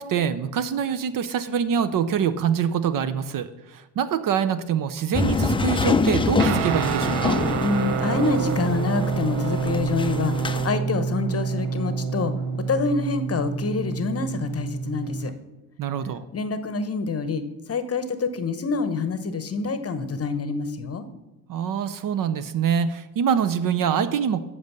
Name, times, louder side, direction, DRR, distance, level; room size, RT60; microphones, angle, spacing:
voice 1, 0.0-7.4 15.8-16.3 21.5-24.4, right 8 dB, 45° right, 12 dB, 0.6 m, -25 dB
sound 1, 5.1-10.7, left 3 dB, 10° left, 0.5 m, -26 dB
Guitar, 6.4-15.3, right 6 dB, 70° right, 0.9 m, -27 dB
voice 2, 7.6-15.3 16.3-21.1, left 4 dB, 30° left, 11 dB, 0.9 m, -27 dB
7.9 x 5.4 x 6.7 m, 1.0 s
hypercardioid pair, 60°, 48 cm